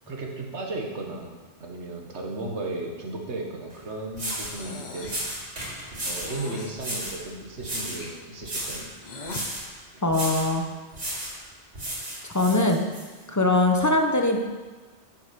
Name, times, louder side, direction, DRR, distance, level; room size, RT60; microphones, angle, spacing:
voice 1, 0.1-1.4 1.6-5.1 6.0-8.9, right 2 dB, 65° right, 1 dB, 1.8 m, -35 dB
sound 1, 3.7-3.8 4.1-4.6 5.0-6.3 6.8-7.2 7.6-8.1 8.4-8.9 9.3-9.7 10.1-10.5 10.9-11.4 11.7-13.0, right 1 dB, 90° right, 3.8 m, -33 dB
Breathing, 4.2-5.3 6.1-6.8 7.5-9.5, left 2 dB, 40° left, 1.1 m, -40 dB
voice 2, 10.0-10.6 12.3-12.9 13.3-14.4, left 2 dB, 15° left, 3 dB, 1.0 m, -21 dB
8.6 x 7.2 x 7.0 m, 1.3 s
omnidirectional pair, 1.2 m